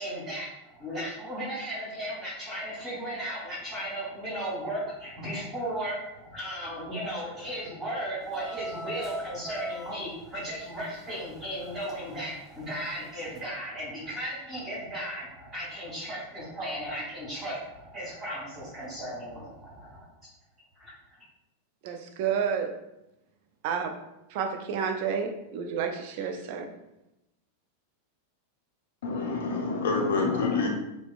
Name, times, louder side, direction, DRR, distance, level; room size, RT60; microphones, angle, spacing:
voice 1, 0.0-20.1 20.7-20.9, right 1 dB, 20° right, -12 dB, 1.5 m, -36 dB
sound 1, 8.3-12.2 12.5-13.0 13.4-13.5, right 1 dB, 15° left, 0.6 m, -40 dB
voice 2, 21.8-22.8 23.6-24.0 24.3-26.7, right 7 dB, 50° right, 5 dB, 0.3 m, -30 dB
voice 3, 29.0-30.7, left 4 dB, 60° left, 1 dB, 0.5 m, -27 dB
2.7 x 2.1 x 2.4 m, 0.88 s
figure-of-eight pair, 90°, 0 cm